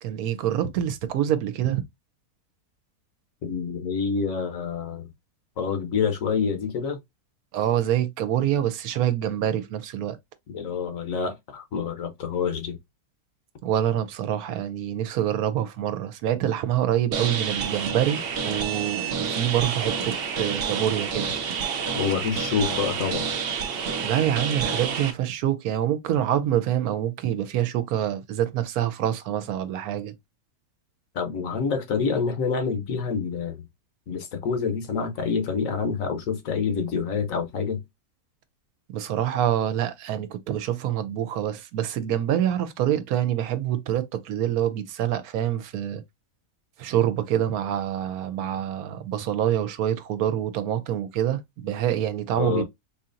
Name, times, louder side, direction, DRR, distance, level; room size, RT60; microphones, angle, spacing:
voice 1, 0.0-1.8 7.5-10.2 13.6-21.3 24.0-30.1 38.9-46.0 46.8-52.6, right 11 dB, 80° right, 1.1 m, -26 dB
voice 2, 3.4-5.1 5.6-7.0 10.5-12.8 21.9-23.3 31.1-33.6 34.1-37.8 52.4-52.6, left 5 dB, 70° left, 1.1 m, -27 dB
sound 1, 17.1-25.1, right 6 dB, 60° right, 0.6 m, -29 dB
4.4 x 2.8 x 2.5 m
omnidirectional pair, 1.6 m